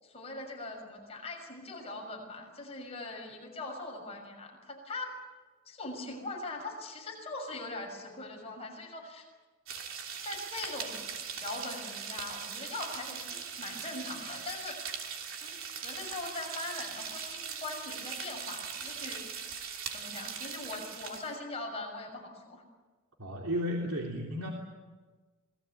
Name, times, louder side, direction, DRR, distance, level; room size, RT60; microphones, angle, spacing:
voice 1, 0.0-5.1 5.7-9.3 10.2-14.8 15.4-15.6 15.8-19.2 19.9-22.6, left 2 dB, 30° left, 1 dB, 6.3 m, -41 dB
sound 1, 9.7-21.3, right 6 dB, 70° right, 3.1 m, -40 dB
voice 2, 23.2-24.5, equal, 90° right, -1 dB, 3.3 m, -33 dB
27.5 x 20.5 x 8.5 m, 1.3 s
head